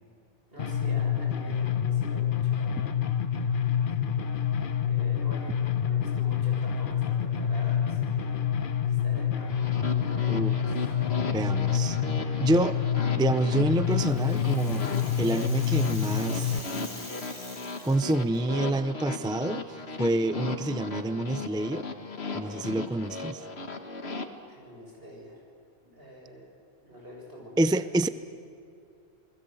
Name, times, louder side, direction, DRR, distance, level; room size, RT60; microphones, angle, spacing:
voice 1, 0.5-2.9 3.9-4.1 4.9-8.4 8.8-10.9 24.5-25.4 25.8-26.5 26.8-27.9, equal, 60° right, -2 dB, 7.5 m, -46 dB
sound 1, 0.6-16.6, left 8 dB, 55° left, 1.1 m, -27 dB
sound 2, 9.5-24.3, left 3 dB, 75° left, 1.8 m, -36 dB
voice 2, 11.3-12.0 12.4-12.8 13.2-14.9 15.2-16.6 17.8-19.7 20.0-21.9 22.3-23.4 27.6-28.1, right 1 dB, 5° right, 12 dB, 0.4 m, -27 dB
Rattle (instrument), 13.6-18.4, left 1 dB, 25° left, 3.4 m, -44 dB
28.5 x 20.5 x 7.9 m, 2.5 s
omnidirectional pair, 1.1 m